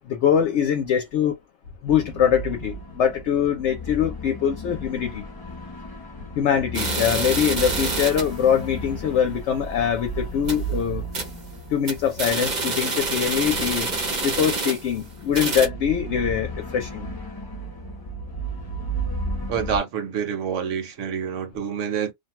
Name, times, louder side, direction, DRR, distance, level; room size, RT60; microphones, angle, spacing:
voice 1, 0.1-1.4 1.8-5.2 6.4-11.0 11.7-13.9 14.2-17.1, left 8 dB, 65° left, 0.8 m, -23 dB
sound 1, 1.9-19.8, right 1 dB, 35° left, 0.3 m, -34 dB
sound 2, 6.7-8.4 8.8-8.9 9.2-9.3 9.8-9.9 10.3-10.7 11.1-11.4 11.7-15.0 15.3-15.7, right 3 dB, 40° right, 0.7 m, -27 dB
voice 2, 19.5-22.1, right 7 dB, 70° right, 1.0 m, -27 dB
2.5 x 2.2 x 2.9 m
omnidirectional pair, 1.4 m